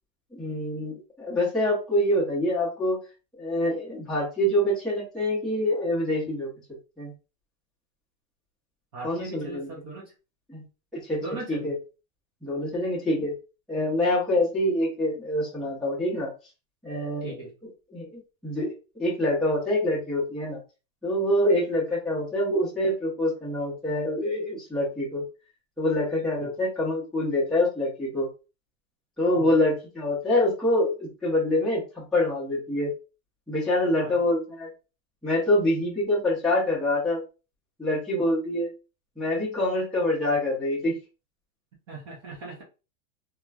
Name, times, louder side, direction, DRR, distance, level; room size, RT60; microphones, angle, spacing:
voice 1, 0.4-3.0 3.4-6.5 7.0-7.1 9.0-9.7 10.5-10.6 10.9-11.7 12.4-13.3 13.7-16.3 16.8-17.4 17.9-20.6 21.0-25.2 25.8-28.3 29.2-32.9 33.5-34.7 35.2-37.2 37.8-38.7 39.2-40.9, left 1 dB, ahead, -8 dB, 0.9 m, -25 dB
voice 2, 8.9-10.1 11.2-11.7 17.2-17.5 26.4-26.5 29.4-29.5 33.9-34.2 41.9-42.6, right 2 dB, 20° right, -4 dB, 0.3 m, -39 dB
2.9 x 2.2 x 2.4 m, 0.31 s
supercardioid pair, 150°, 40 cm